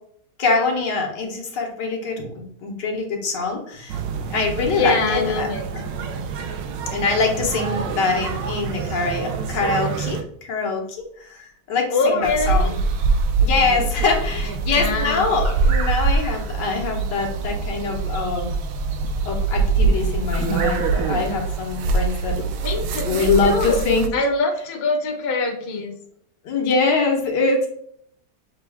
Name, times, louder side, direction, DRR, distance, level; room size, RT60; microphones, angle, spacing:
voice 1, 0.4-4.0 4.3-5.5 5.7-5.8 6.9-10.8 11.2-12.7 13.4-18.5 19.2-22.6 23.0-24.1 26.4-27.7, left 4 dB, 80° left, 1 dB, 1.6 m, -23 dB
sound 1, 3.9-10.2, right 6 dB, 90° right, 1.3 m, -29 dB
voice 2, 4.7-5.7 6.4-6.5 11.9-12.7 14.7-15.4 22.6-23.9 24.1-25.9, left 3 dB, 50° left, 2 dB, 0.9 m, -24 dB
sound 2, 12.2-24.1, right 4 dB, 70° right, 0.9 m, -23 dB
6.5 x 2.3 x 3.4 m, 0.66 s
omnidirectional pair, 1.9 m